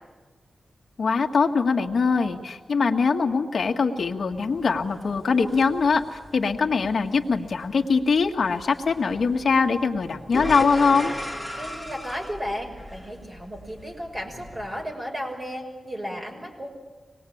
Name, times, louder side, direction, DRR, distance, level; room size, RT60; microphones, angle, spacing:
voice 1, 1.0-11.1, left 5 dB, 65° left, 4 dB, 1.9 m, -22 dB
sound 1, 4.3-14.8, left 1 dB, 10° right, 3.7 m, -38 dB
voice 2, 11.6-16.7, equal, 30° right, 1 dB, 6.1 m, -34 dB
25.5 x 20.5 x 8.7 m, 1.3 s
wide cardioid pair, 120°, 0 cm